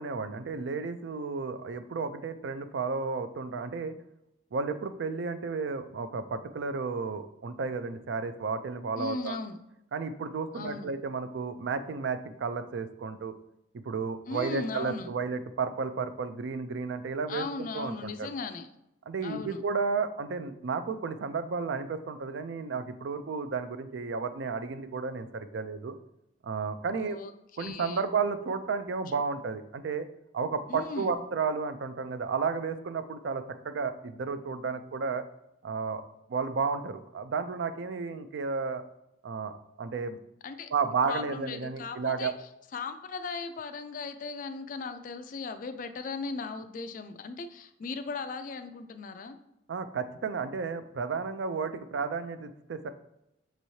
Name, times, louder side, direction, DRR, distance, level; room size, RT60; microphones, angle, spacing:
voice 1, 0.0-4.0 4.5-9.4 9.9-13.3 13.8-18.3 19.1-26.0 26.4-27.2 27.6-30.1 30.3-35.2 35.6-36.0 36.3-38.8 39.2-40.2 40.7-42.3 49.7-52.9, right 5 dB, 65° right, 10 dB, 0.4 m, -32 dB
voice 2, 9.0-9.6 10.5-10.9 14.3-15.1 17.3-18.7 19.2-19.6 27.0-27.3 27.6-28.0 30.7-31.1 40.4-40.7 41.1-42.3 42.7-49.4, left 4 dB, 40° left, 8 dB, 0.3 m, -37 dB
6.3 x 3.0 x 2.7 m, 0.84 s
head